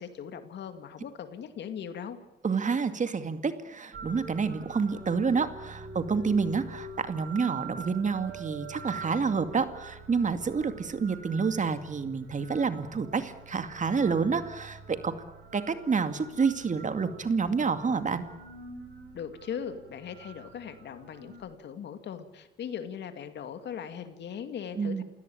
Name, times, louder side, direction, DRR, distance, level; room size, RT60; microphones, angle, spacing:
voice 1, 0.0-2.2 19.1-25.0, left 8 dB, 70° left, 9 dB, 2.4 m, -39 dB
voice 2, 2.4-15.1 15.5-18.2 24.8-25.0, right 5 dB, 40° right, 10 dB, 2.3 m, -28 dB
sound 1, 3.9-21.4, right 3 dB, 65° right, 6.9 m, -45 dB
28.5 x 17.0 x 8.7 m, 0.97 s
supercardioid pair, 65°, 19 cm